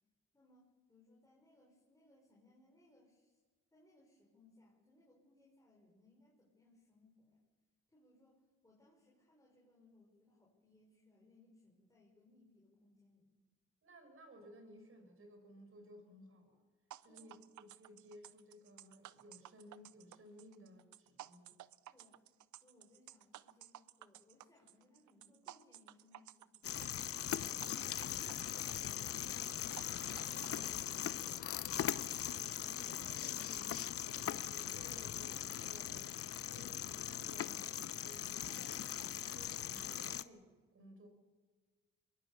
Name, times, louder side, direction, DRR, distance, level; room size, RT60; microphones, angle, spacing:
voice 1, 0.3-3.4 3.7-7.5 7.9-13.4 17.1-17.3 21.9-26.7, left 2 dB, 10° left, -4 dB, 5.7 m, -68 dB
voice 2, 13.8-16.6 17.0-21.6 32.5-36.2 36.5-41.1, equal, 45° right, 7 dB, 5.4 m, -58 dB
sound 1, 16.9-30.6, right 14 dB, 75° right, 0.6 m, -55 dB
sound 2, 26.6-40.2, left 10 dB, 50° left, 0.7 m, -40 dB
23.0 x 21.0 x 7.1 m, 1.4 s
cardioid pair, 90°, 30 cm